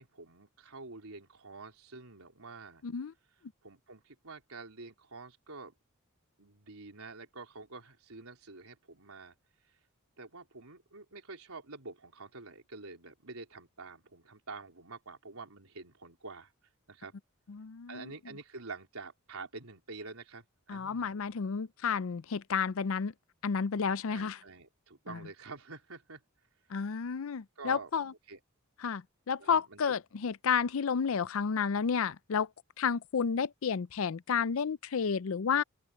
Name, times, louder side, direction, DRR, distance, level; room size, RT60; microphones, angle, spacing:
voice 1, 0.0-2.8 3.6-5.7 6.4-9.3 10.2-16.5 16.9-17.1 17.9-21.1 24.1-26.2 27.6-27.9 28.3-28.4 29.4-29.8, right 3 dB, 90° right, 4.0 m, -47 dB
voice 2, 2.8-3.1 17.5-18.1 20.7-23.1 23.4-24.4 25.1-25.2 26.7-28.1 28.8-32.5 32.8-35.6, left 6 dB, 65° left, 0.5 m, -31 dB
open air
head